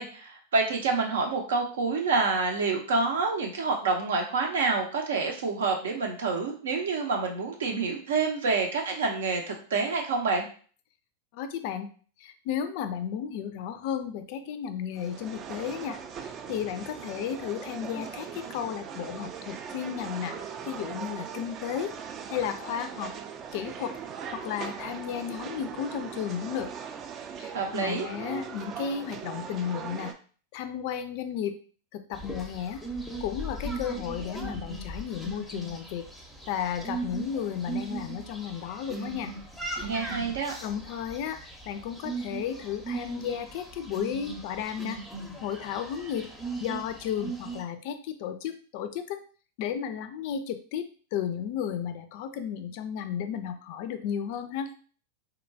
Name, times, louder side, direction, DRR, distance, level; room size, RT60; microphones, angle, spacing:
voice 1, 0.0-10.5 27.5-28.1 39.8-40.5, right 4 dB, 70° right, 2 dB, 0.7 m, -27 dB
voice 2, 11.3-11.9 12.2-20.4 20.7-21.9 22.3-23.1 23.5-24.0 24.3-26.7 27.4-30.1 30.5-31.6 31.9-32.8 33.2-36.1 36.5-39.3 40.6-45.0 45.4-46.3 46.6-49.2 49.6-54.7, left 8 dB, 55° left, 10 dB, 0.3 m, -33 dB
sound 1, 14.9-30.1, right 7 dB, 35° right, 0.3 m, -40 dB
sound 2, 32.1-47.6, right 3 dB, ahead, 0.6 m, -38 dB
2.8 x 2.2 x 2.6 m, 0.41 s
hypercardioid pair, 95°, 0 cm